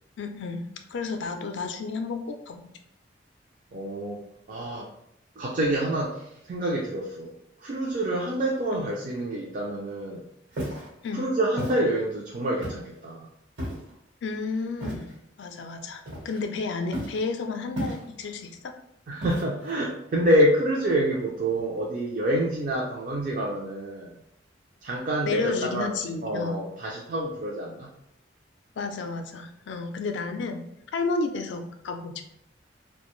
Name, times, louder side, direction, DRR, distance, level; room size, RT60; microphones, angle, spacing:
voice 1, 0.2-0.6 0.9-2.7 8.7-8.8 11.0-11.3 14.2-15.1 15.4-18.7 25.3-26.6 28.8-30.6 30.9-32.2, left 4 dB, 70° left, 6 dB, 0.4 m, -31 dB
voice 2, 3.7-4.2 4.5-4.9 5.4-7.3 7.6-10.2 11.1-13.3 19.1-24.2 24.8-25.9 26.2-27.9, right 1 dB, 45° right, -2 dB, 0.4 m, -27 dB
Walk footsteps, 10.5-10.9 11.6-11.8 12.6-13.0 13.6-13.9 14.8-15.1 16.1-16.5 16.9-17.2 17.8-18.3 19.2-19.7, right 1 dB, 75° right, 1.0 m, -33 dB
2.4 x 2.1 x 3.0 m, 0.79 s
head